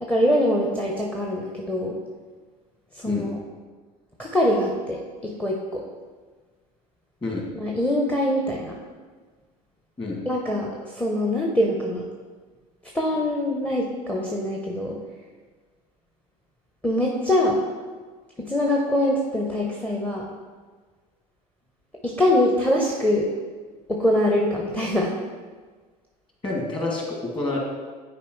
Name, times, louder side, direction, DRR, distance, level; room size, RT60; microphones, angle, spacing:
voice 1, 0.0-1.9 3.0-3.4 4.2-5.8 7.5-8.8 10.2-10.7 11.0-12.0 12.9-15.0 16.8-17.6 18.5-20.3 22.0-23.3 23.9-25.1, left 1 dB, 5° left, -1 dB, 0.8 m, -23 dB
voice 2, 26.4-27.6, left 2 dB, 25° left, -2 dB, 2.1 m, -28 dB
9.9 x 4.5 x 3.2 m, 1.4 s
figure-of-eight pair, 70°, 21 cm